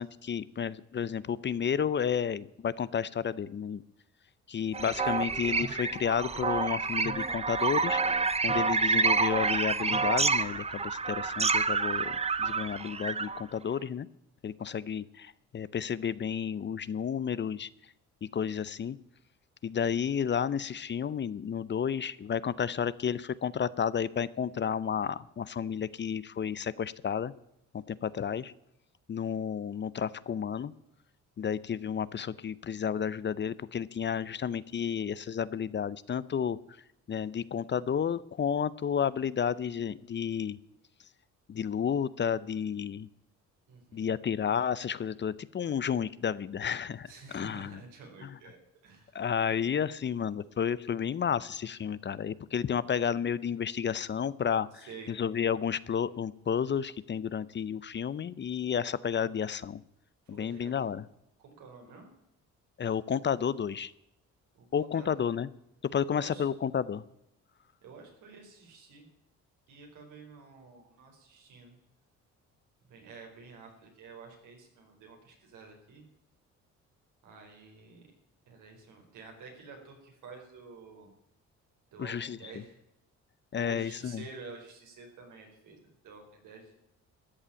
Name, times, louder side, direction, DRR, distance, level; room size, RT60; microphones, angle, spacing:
voice 1, 0.0-3.8 4.5-8.0 8.4-14.1 14.4-17.7 18.2-19.0 19.6-27.3 27.7-28.5 29.1-30.7 31.4-36.6 37.1-40.6 41.5-43.1 43.9-47.8 48.2-48.4 49.1-59.8 60.3-61.0 62.8-63.9 64.7-65.5 65.8-67.0 82.0-82.4 83.5-84.2, left 7 dB, 35° left, 18 dB, 0.6 m, -31 dB
sound 1, 4.7-13.4, right 4 dB, 20° right, 0.7 m, -28 dB
voice 2, 43.7-44.1 47.1-48.6 48.8-49.2 54.7-55.1 60.3-60.9 61.4-62.1 64.5-65.3 66.1-66.5 67.8-69.1 69.7-71.8 72.9-76.0 77.2-78.1 78.5-81.1 81.9-82.8 83.5-86.7, right 4 dB, 85° right, 2 dB, 4.6 m, -50 dB
13.5 x 7.3 x 8.8 m, 0.84 s
cardioid pair, 90°, 30 cm